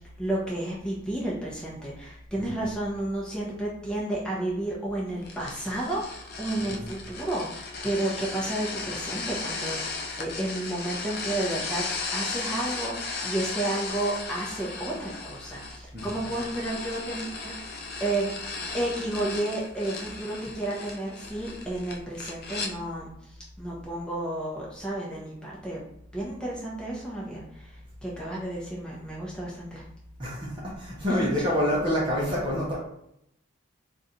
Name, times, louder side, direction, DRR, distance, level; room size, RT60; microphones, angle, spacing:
voice 1, 0.2-9.8 10.2-11.8 12.1-17.7 18.0-18.3 18.7-25.8 26.1-29.8 31.1-31.5, right 1 dB, 5° left, -6 dB, 0.9 m, -32 dB
sound 1, 5.2-22.7, left 4 dB, 50° left, 0.5 m, -36 dB
voice 2, 30.2-32.8, equal, 25° right, -5 dB, 0.8 m, -27 dB
3.2 x 2.6 x 4.1 m, 0.76 s
head